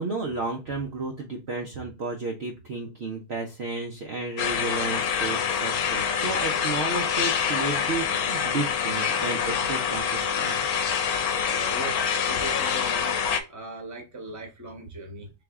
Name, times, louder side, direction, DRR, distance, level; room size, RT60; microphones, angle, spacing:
voice 1, 0.0-10.6, right 3 dB, 55° right, 1 dB, 0.8 m, -32 dB
sound 1, 4.4-13.4, left 7 dB, 70° left, 1.1 m, -26 dB
voice 2, 11.4-13.1 13.4-15.3, right 2 dB, 15° right, 2 dB, 1.0 m, -40 dB
3.5 x 3.4 x 3.5 m, 0.28 s
omnidirectional pair, 1.6 m